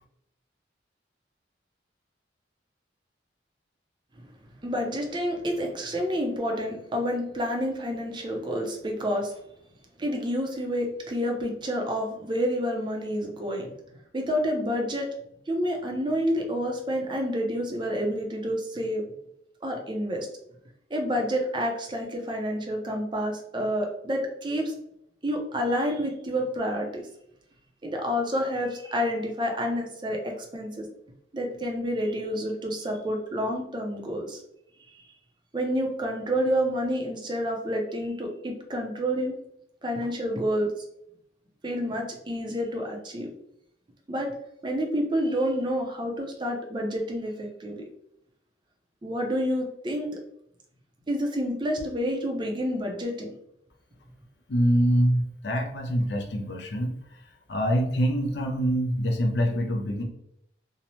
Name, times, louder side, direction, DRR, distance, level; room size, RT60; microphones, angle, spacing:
voice 1, 4.6-9.3 10.0-13.7 14.1-15.1 15.5-19.0 19.6-20.3 20.9-24.7 25.2-27.0 27.8-30.9 31.3-34.4 35.5-39.4 39.8-40.7 41.6-43.3 44.1-44.3 44.6-47.8 49.0-50.1 51.1-53.3, equal, 25° right, 1 dB, 0.5 m, -29 dB
voice 2, 54.5-56.9 57.5-60.0, equal, 65° left, 3 dB, 0.5 m, -25 dB
2.7 x 2.0 x 2.9 m, 0.75 s
head